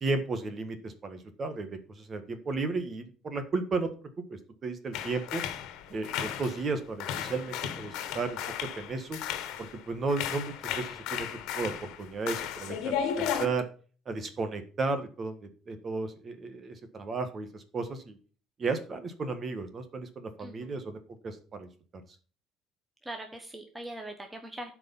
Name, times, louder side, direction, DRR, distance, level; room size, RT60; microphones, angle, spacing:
voice 1, 0.0-3.9 4.3-5.4 5.9-9.2 9.6-11.3 11.5-13.6 14.0-18.2 18.6-21.7, right 3 dB, 30° right, 8 dB, 1.5 m, -34 dB
sound 1, 4.9-6.8 7.0-9.8 10.1-13.5, left 9 dB, 75° left, 1.5 m, -35 dB
voice 2, 20.4-20.7 23.1-24.7, right 1 dB, 10° right, 4 dB, 1.2 m, -41 dB
12.5 x 4.9 x 5.4 m, 0.40 s
cardioid pair, 150°, 0 cm